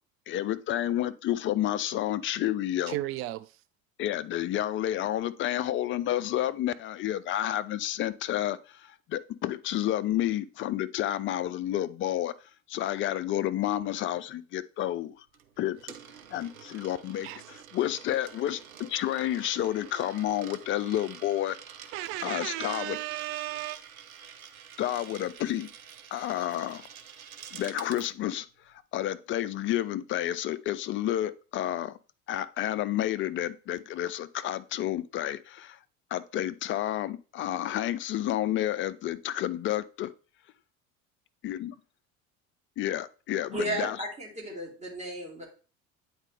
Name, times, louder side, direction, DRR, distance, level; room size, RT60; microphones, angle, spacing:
voice 1, 0.3-3.0 4.0-12.3 12.7-15.2 15.6-15.9 16.3-21.6 22.2-23.0 24.8-25.7 26.1-26.8 27.5-28.5 28.9-31.9 32.3-35.8 36.1-40.1 41.4-41.7 42.8-44.0, left 12 dB, 30° left, 0.4 m, -30 dB
voice 2, 2.9-3.5 17.2-17.5 21.9-23.8, right 15 dB, 35° right, 0.4 m, -34 dB
Coin (dropping), 15.3-28.1, right 8 dB, 80° right, 0.8 m, -48 dB
voice 3, 43.5-45.5, right 1 dB, 15° right, 2.9 m, -34 dB
8.8 x 4.3 x 3.3 m
figure-of-eight pair, 65°, 42 cm